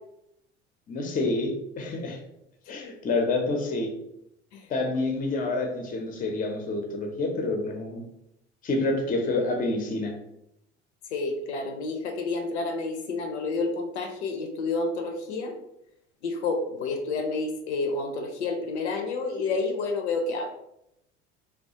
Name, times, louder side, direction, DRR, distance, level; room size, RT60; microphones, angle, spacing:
voice 1, 0.9-2.2 2.7-3.9 4.7-8.0 8.6-10.1, left 2 dB, 25° left, 3 dB, 0.5 m, -28 dB
voice 2, 11.1-15.5 16.2-20.5, left 3 dB, 80° left, 4 dB, 0.5 m, -29 dB
2.2 x 2.1 x 2.7 m, 0.81 s
hypercardioid pair, 70°, 34 cm